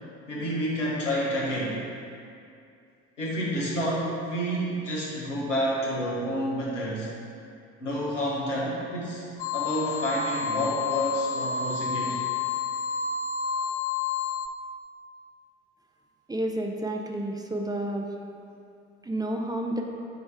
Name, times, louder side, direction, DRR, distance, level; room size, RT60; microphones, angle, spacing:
voice 1, 0.3-1.8 3.2-7.1 7.8-12.2, equal, 85° left, -5 dB, 1.4 m, -29 dB
sound 1, 9.4-14.5, left 5 dB, 40° left, 0.4 m, -30 dB
voice 2, 16.3-18.1 19.0-19.8, right 1 dB, 10° right, 1 dB, 0.5 m, -30 dB
8.6 x 3.1 x 4.7 m, 2.5 s
figure-of-eight pair, 65°, 36 cm